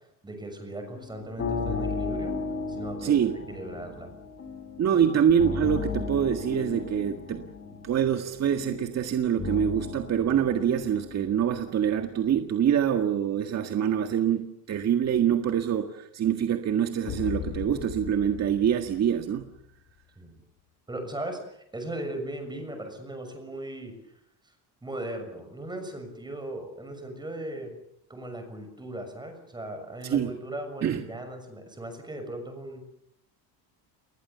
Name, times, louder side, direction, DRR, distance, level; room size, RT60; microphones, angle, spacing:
voice 1, 0.2-2.3 2.7-4.1 4.9-5.0 20.2-20.4 20.9-23.9 24.8-27.7 28.1-32.8, right 1 dB, 10° right, 6 dB, 6.4 m, -38 dB
sound 1, 0.9-12.1, left 4 dB, 35° left, 4.6 m, -35 dB
voice 2, 3.0-3.4 4.8-7.5 7.8-19.5 30.0-30.3 30.8-31.0, right 9 dB, 40° right, 6 dB, 1.8 m, -25 dB
sound 2, 17.0-19.7, left 13 dB, 60° left, 1.3 m, -38 dB
29.0 x 21.5 x 7.0 m, 0.72 s
cardioid pair, 150°, 41 cm